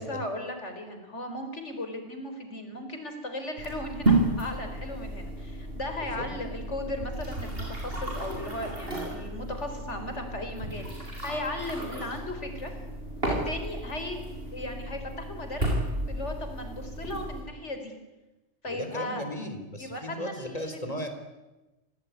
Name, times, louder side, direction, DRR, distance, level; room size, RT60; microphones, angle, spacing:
voice 1, 0.0-10.9 11.2-12.7 13.2-14.2 14.5-15.6 16.1-17.9 18.6-19.2 19.8-20.8, left 1 dB, 90° left, 6 dB, 4.7 m, -36 dB
sound 1, 3.6-17.4, right 2 dB, 55° right, 6.6 m, -32 dB
voice 2, 6.0-6.3 18.7-21.1, equal, 35° left, 7 dB, 3.7 m, -36 dB
26.5 x 18.5 x 9.5 m, 1.1 s
omnidirectional pair, 1.2 m